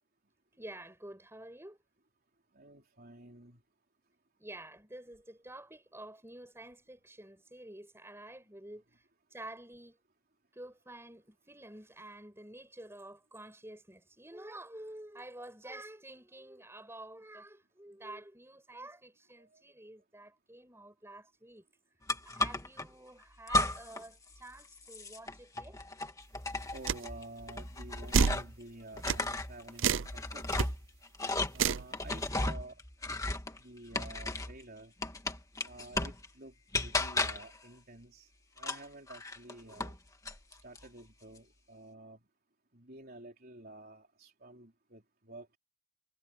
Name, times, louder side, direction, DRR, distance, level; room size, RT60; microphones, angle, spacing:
voice 1, 0.6-1.8 4.4-8.8 9.3-10.0 10.5-21.6 22.3-25.8, right 1 dB, 10° right, 7.1 m, -49 dB
voice 2, 2.5-3.6 19.4-19.6 26.7-30.6 31.5-32.8 33.6-34.9 35.6-36.5 36.8-38.3 38.6-40.0 40.6-42.2 42.7-45.6, right 2 dB, 45° right, 4.0 m, -51 dB
sound 1, 22.1-22.9 23.5-24.1 24.3-28.6 28.9-34.6 35.0-36.2 36.7-37.6 38.6-40.0 40.2-40.8, left 2 dB, 15° left, 1.9 m, -35 dB
sound 2, 26.9-27.0 28.1-28.4 29.1-29.2 29.8-30.1 30.5-30.7 31.6-31.9, right 6 dB, 60° right, 0.6 m, -27 dB
head